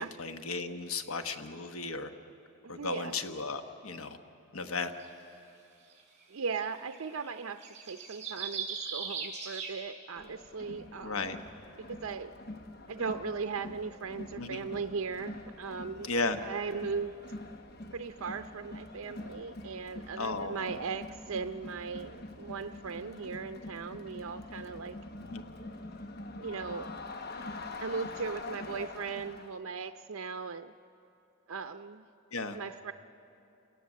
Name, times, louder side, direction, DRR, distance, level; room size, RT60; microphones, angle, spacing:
voice 1, 0.0-2.1 2.7-4.2 4.5-4.9 11.0-11.4 14.4-14.6 16.0-16.4 20.2-20.6 25.2-25.5 32.3-32.6, left 3 dB, 85° left, 7 dB, 1.1 m, -35 dB
voice 2, 2.6-3.1 6.3-7.6 7.9-11.2 11.8-12.3 12.9-16.1 16.4-17.1 17.9-25.0 26.4-26.9 27.8-30.7 31.5-32.0 32.5-32.9, right 5 dB, 75° right, 8 dB, 0.6 m, -38 dB
sound 1, 5.0-5.1 6.2-6.3 6.5-9.7, right 6 dB, 35° right, 4.8 m, -39 dB
Crowd, 10.2-29.6, left 2 dB, 50° left, 1.0 m, -45 dB
28.5 x 17.5 x 7.3 m, 2.7 s
head